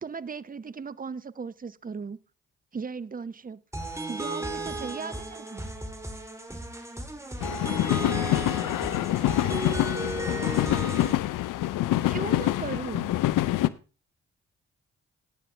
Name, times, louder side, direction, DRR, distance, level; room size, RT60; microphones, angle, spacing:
voice 1, 0.0-2.2 2.7-3.6 4.1-5.7 12.0-13.1, right 5 dB, 25° right, 0.8 m, -37 dB
sound 1, 3.7-11.1, right 1 dB, 10° right, 2.7 m, -34 dB
sound 2, 7.4-13.7, left 15 dB, 65° left, 0.6 m, -26 dB
voice 2, 9.8-10.8, left 3 dB, 30° left, 1.5 m, -50 dB
15.5 x 9.4 x 3.3 m
hypercardioid pair, 40°, 34 cm